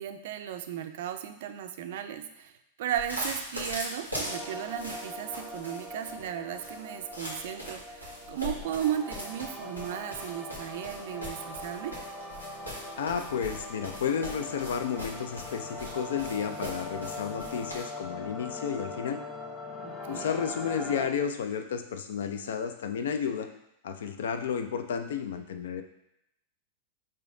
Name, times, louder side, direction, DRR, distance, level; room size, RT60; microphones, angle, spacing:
voice 1, 0.0-2.5 2.8-12.0 19.8-20.4, right 10 dB, 55° right, 9 dB, 0.4 m, -35 dB
sound 1, 2.9-17.8, left 1 dB, 90° left, 1.3 m, -40 dB
sound 2, 4.2-21.1, left 2 dB, 10° left, 0.6 m, -41 dB
voice 2, 13.0-19.2 20.1-23.5 23.8-25.8, left 7 dB, 60° left, 7 dB, 0.4 m, -32 dB
4.9 x 2.8 x 3.7 m, 0.80 s
figure-of-eight pair, 95°, 0 cm